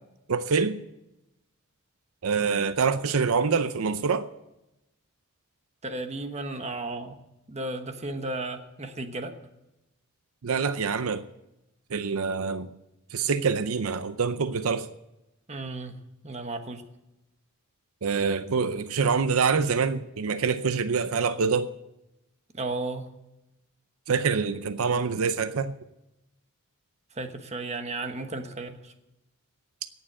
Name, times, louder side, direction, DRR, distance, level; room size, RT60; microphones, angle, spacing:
voice 1, 0.3-0.8 2.2-4.3 10.4-11.2 11.9-12.7 13.1-14.9 18.0-21.7 24.1-25.7, right 5 dB, 80° right, 0.6 m, -25 dB
voice 2, 5.8-7.2 7.5-9.3 15.5-16.0 16.2-16.8 22.5-23.1 27.1-28.9, right 2 dB, 30° right, 1.2 m, -34 dB
17.5 x 7.3 x 7.5 m
head